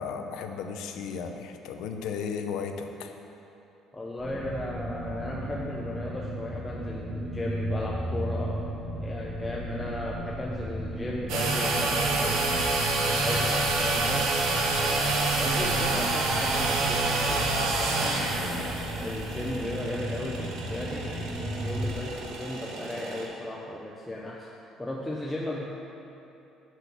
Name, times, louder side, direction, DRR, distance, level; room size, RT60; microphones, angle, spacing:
voice 1, 0.0-3.1 18.0-18.8, left 6 dB, 75° left, 6 dB, 0.7 m, -35 dB
voice 2, 3.9-8.7 9.0-12.5 13.1-14.4 14.8-18.4 19.0-24.5 24.8-25.6, left 1 dB, 10° left, -3 dB, 0.6 m, -36 dB
sound 1, 4.2-21.9, equal, 25° right, 1.1 m, -35 dB
sound 2, 11.3-23.3, right 3 dB, 80° right, 1.2 m, -28 dB
6.2 x 6.1 x 6.8 m, 2.9 s
cardioid pair, 155°, 0 cm